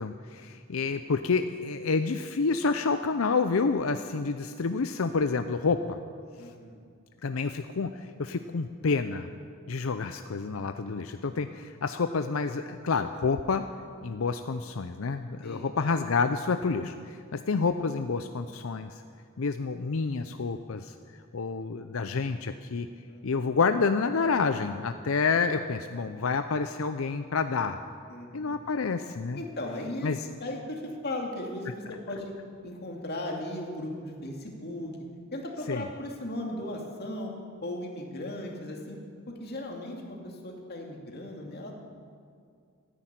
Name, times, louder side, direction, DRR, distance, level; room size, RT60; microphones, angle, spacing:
voice 1, 0.0-6.0 7.2-9.3 9.7-13.6 14.0-18.9 19.4-20.9 21.3-22.9 23.2-27.8 28.3-29.4 30.0-30.2 35.7-35.9, left 4 dB, 90° left, 9 dB, 0.6 m, -28 dB
voice 2, 6.4-6.8 15.4-15.9 23.1-23.5 28.1-28.6 29.3-30.1 30.4-32.3 32.6-34.9 35.3-37.3 37.6-39.0 39.3-41.7, left 1 dB, 50° left, 1 dB, 2.4 m, -37 dB
14.5 x 10.0 x 9.2 m, 2.3 s
head